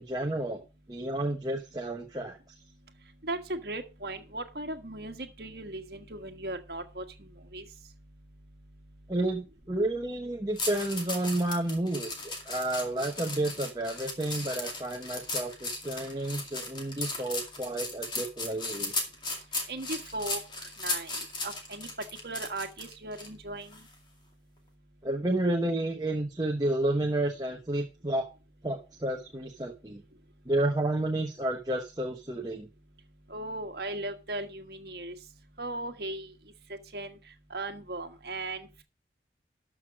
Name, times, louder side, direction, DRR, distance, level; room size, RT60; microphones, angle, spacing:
voice 1, 0.0-2.4 9.1-18.9 25.0-28.2 28.6-30.0 30.4-32.7, right 1 dB, 20° right, 2 dB, 1.1 m, -31 dB
voice 2, 3.2-7.6 19.7-21.9 22.2-23.8 33.3-35.1 35.6-36.3 36.7-37.2 37.5-38.8, right 2 dB, 55° right, 5 dB, 1.6 m, -38 dB
sound 1, 10.6-23.3 23.7-23.9, left 2 dB, 25° left, 2.2 m, -36 dB
12.5 x 6.3 x 4.8 m, 0.29 s
head